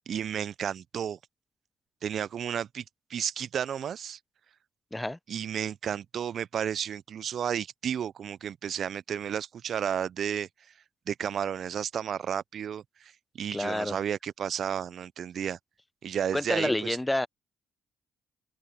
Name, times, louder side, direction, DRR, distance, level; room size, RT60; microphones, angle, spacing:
voice 1, 0.1-1.2 2.0-2.8 3.1-4.2 5.3-10.5 11.1-15.6 16.0-17.0, right 8 dB, 60° right, 0.3 m, -32 dB
voice 2, 13.5-14.0 16.3-17.3, left 1 dB, 10° left, 0.5 m, -28 dB
open air
cardioid pair, 90°, 0 cm